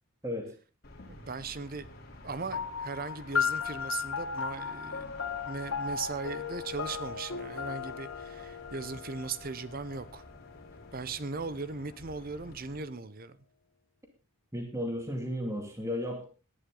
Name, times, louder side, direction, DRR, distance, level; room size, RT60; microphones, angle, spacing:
voice 1, 0.2-0.5 14.5-16.2, equal, 15° right, 3 dB, 2.5 m, -34 dB
sound 1, 0.8-12.8, left 2 dB, 45° left, 3.6 m, -51 dB
voice 2, 1.1-1.9 2.2-10.2 10.9-13.4, right 4 dB, 45° right, 15 dB, 0.8 m, -38 dB
sound 2, 2.5-11.3, left 6 dB, 70° left, 1.7 m, -36 dB
18.5 x 11.0 x 3.9 m, 0.32 s
head